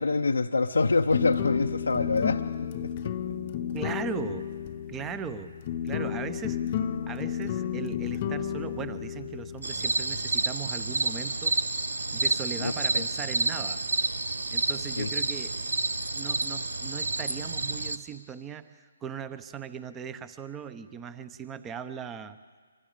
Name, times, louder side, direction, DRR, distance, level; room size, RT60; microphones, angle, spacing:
voice 1, 0.0-2.9 12.6-13.0 15.0-15.1, left 3 dB, 80° left, 5 dB, 0.7 m, -26 dB
sound 1, 1.1-10.4, left 9 dB, 35° left, 0.8 m, -32 dB
voice 2, 3.7-4.5 4.9-5.6 5.8-6.6 7.1-11.6 12.1-13.8 14.5-15.5 16.1-22.4, right 7 dB, 15° right, 13 dB, 0.9 m, -38 dB
sound 2, 9.6-18.0, right 3 dB, 80° right, 1.0 m, -29 dB
26.5 x 24.0 x 5.1 m, 1.5 s
figure-of-eight pair, 145°, 0 cm